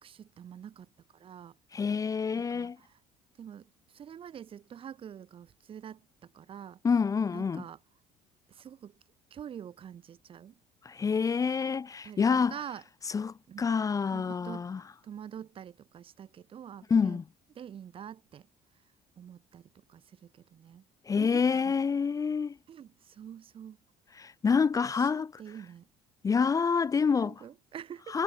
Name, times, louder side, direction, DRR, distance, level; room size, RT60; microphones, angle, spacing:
voice 1, 0.0-1.6 2.3-3.0 3.4-6.8 7.3-7.8 8.5-9.0 9.3-10.6 12.0-12.8 13.5-13.6 14.1-14.7 15.0-17.2 17.6-18.5 19.2-20.8 21.2-21.7 22.7-23.8 24.7-25.9 27.2-28.2, right 9 dB, 45° right, 5.4 m, -46 dB
voice 2, 1.7-2.8 6.8-7.6 10.8-12.5 13.1-14.8 16.9-17.2 21.1-22.5 24.2-25.3 26.2-27.3 28.1-28.2, left 5 dB, 25° left, 1.0 m, -27 dB
cardioid pair, 115°, 13 cm